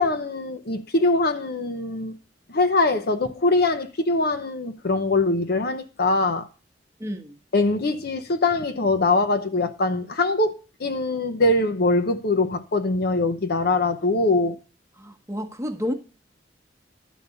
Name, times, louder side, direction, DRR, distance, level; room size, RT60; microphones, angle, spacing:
voice 1, 0.0-2.1 2.5-6.5 7.5-10.5 10.8-14.6, left 2 dB, 60° left, 0.8 m, -22 dB
voice 2, 7.0-7.4 15.0-15.9, equal, 15° right, 1.1 m, -30 dB
12.0 x 4.1 x 7.0 m
head